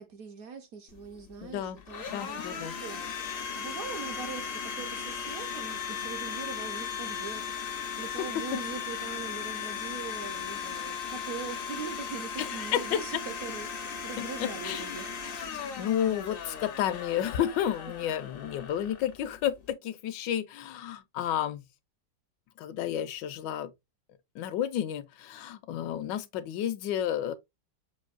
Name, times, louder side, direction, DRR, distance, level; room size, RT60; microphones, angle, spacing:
voice 1, 0.0-3.2 3.6-13.7 14.0-15.1, right 6 dB, 65° right, 0.9 m, -42 dB
Domestic sounds home sounds, 0.9-19.7, left 7 dB, 60° left, 0.5 m, -37 dB
voice 2, 1.4-1.8 2.1-2.8 8.5-8.6 12.4-13.0 14.2-21.6 22.6-23.7 24.3-27.3, left 10 dB, 80° left, 1.2 m, -32 dB
6.2 x 2.6 x 2.3 m
omnidirectional pair, 2.0 m